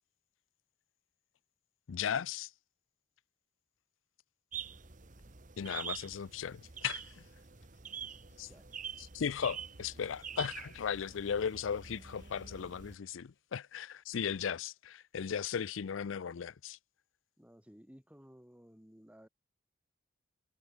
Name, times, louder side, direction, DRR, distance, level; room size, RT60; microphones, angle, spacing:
voice 1, 1.9-2.5 5.6-7.2 8.4-8.5 9.0-16.8, left 7 dB, 80° left, 0.5 m, -37 dB
sound 1, 4.5-13.0, right 7 dB, 40° right, 1.4 m, -46 dB
sound 2, 8.1-13.7, left 5 dB, 60° left, 1.9 m, -68 dB
voice 2, 8.4-8.7 17.4-19.3, equal, 5° right, 1.6 m, -57 dB
head